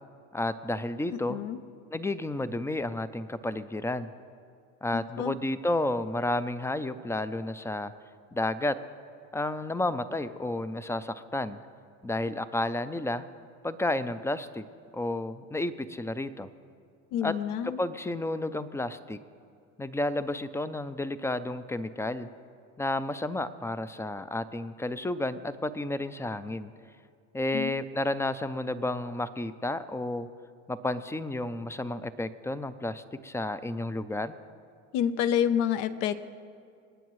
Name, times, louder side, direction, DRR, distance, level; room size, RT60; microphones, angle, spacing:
voice 1, 0.3-1.4 1.9-4.1 4.8-7.9 8.3-8.8 9.3-11.6 12.0-13.2 13.6-14.6 14.9-16.5 17.2-17.3 17.6-19.2 19.8-22.3 22.8-26.7 27.3-30.3 30.7-34.3, left 2 dB, 5° left, 13 dB, 0.4 m, -31 dB
voice 2, 4.9-5.4 17.1-17.8 27.5-27.7 34.9-36.2, left 9 dB, 70° left, 12 dB, 0.8 m, -28 dB
27.0 x 9.1 x 3.1 m, 2.3 s
supercardioid pair, 90°, 38 cm